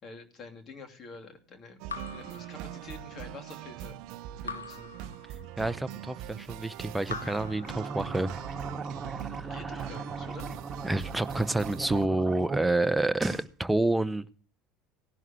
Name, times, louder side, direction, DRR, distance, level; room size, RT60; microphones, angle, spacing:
voice 1, 0.0-4.0 4.4-4.9 9.5-10.6, left 3 dB, 40° left, 5 dB, 2.7 m, -47 dB
sound 1, 1.8-12.1, right 12 dB, 55° right, 0.5 m, -42 dB
Raindrop / Drip, 1.9-3.3 4.5-5.8 7.0-8.5, left 5 dB, 85° left, 1.0 m, -43 dB
voice 2, 5.6-8.4 9.4-9.5 10.8-14.3, right 2 dB, 5° right, 13 dB, 0.8 m, -28 dB
sound 2, 7.5-12.6 12.9-13.5, right 3 dB, 20° right, 1.9 m, -38 dB
17.5 x 11.0 x 2.9 m, 0.41 s
figure-of-eight pair, 65°, 0 cm